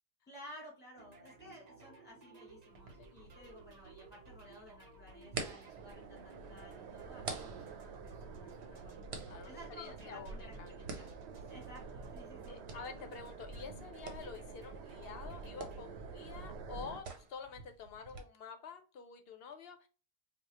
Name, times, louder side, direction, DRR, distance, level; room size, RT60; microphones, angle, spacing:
voice 1, 0.3-9.0 9.5-11.1 11.5-12.6, equal, 10° left, 1.9 m, -55 dB
sound 1, 0.9-16.9, right 2 dB, 45° right, 0.7 m, -58 dB
sound 2, 2.7-18.2, right 4 dB, 70° right, 1.0 m, -50 dB
sound 3, 5.6-17.0, right 4 dB, 90° right, 0.9 m, -48 dB
voice 2, 9.2-10.7 12.5-19.9, left 6 dB, 65° left, 0.8 m, -48 dB
4.7 x 2.3 x 2.9 m
omnidirectional pair, 1.1 m